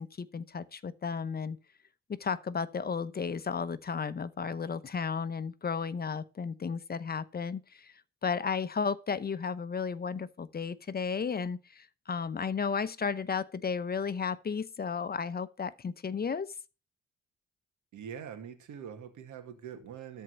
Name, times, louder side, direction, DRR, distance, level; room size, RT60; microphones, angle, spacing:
voice 1, 0.0-1.6 2.2-7.9 8.2-16.5, left 6 dB, 30° left, 0.8 m, -33 dB
voice 2, 17.9-20.2, right 8 dB, 75° right, 2.3 m, -44 dB
13.0 x 4.6 x 7.4 m
cardioid pair, 90°, 30 cm